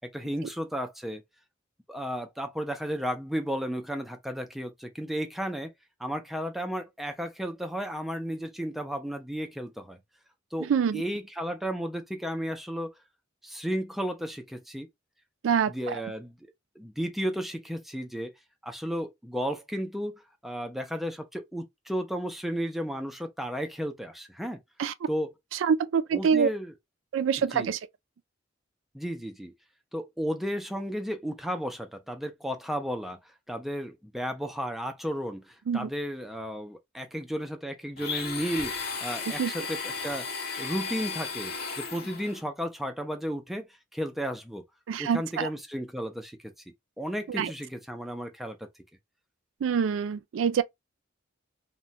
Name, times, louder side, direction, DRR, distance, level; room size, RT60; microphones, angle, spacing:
voice 1, 0.1-1.2 1.9-5.7 6.0-10.0 10.5-12.9 13.4-14.9 15.7-18.3 18.6-20.1 20.4-24.6 25.1-25.3 26.1-26.7 27.5-27.7 28.9-29.5 29.9-33.2 33.5-38.8 39.0-40.3 40.6-43.7 43.9-44.6 45.0-46.5 47.0-48.6, equal, ahead, 0.4 m, -33 dB
voice 2, 10.6-11.0 15.4-16.0 24.8-24.9 25.6-26.5 27.1-27.8 35.7-35.9 39.4-39.5 44.9-45.5 47.3-47.5 49.6-50.6, right 7 dB, 85° right, 0.3 m, -25 dB
Domestic sounds home sounds, 38.0-42.4, left 5 dB, 55° left, 0.7 m, -35 dB
3.0 x 2.1 x 2.6 m
head